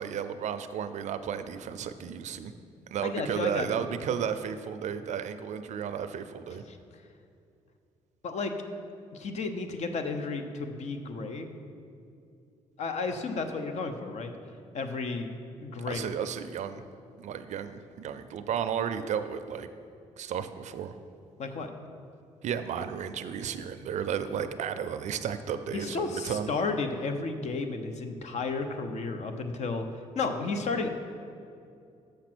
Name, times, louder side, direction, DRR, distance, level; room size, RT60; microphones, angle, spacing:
voice 1, 0.0-2.5 2.9-6.6 15.9-16.8 17.2-19.7 20.2-21.0 22.4-26.5, right 8 dB, 65° right, 11 dB, 0.4 m, -33 dB
voice 2, 3.0-3.9 6.7-6.8 8.2-8.5 9.1-11.5 12.8-14.3 14.7-15.3 15.6-16.1 21.4-21.7 25.7-30.9, left 3 dB, 60° left, 7 dB, 0.8 m, -33 dB
6.5 x 5.8 x 6.0 m, 2.5 s
cardioid pair, 75°, 13 cm